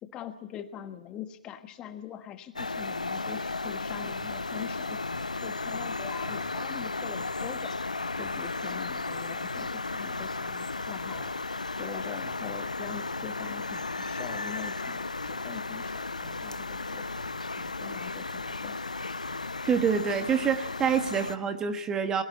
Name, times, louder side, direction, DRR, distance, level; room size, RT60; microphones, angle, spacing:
voice 1, 0.0-5.0 5.4-7.8 8.1-11.3 11.8-17.0 17.6-18.8, left 10 dB, 20° left, 9 dB, 1.4 m, -43 dB
sound 1, 2.6-21.4, left 3 dB, 80° left, 0.8 m, -34 dB
sound 2, 4.1-4.4 5.1-5.4 6.1-6.4 7.1-7.4 8.1-8.4 9.1-9.4 10.0-10.4 11.1-11.4 12.1-12.4 13.1-13.4 14.1-14.4 15.1-15.4 16.2-16.5 17.1-17.5 18.2-18.6 19.2-19.5 20.1-20.2, right 2 dB, 75° right, 5.4 m, -51 dB
voice 2, 19.7-22.2, right 7 dB, 15° right, 9 dB, 1.4 m, -26 dB
29.5 x 22.0 x 4.3 m, 0.80 s
figure-of-eight pair, 125°, 4 cm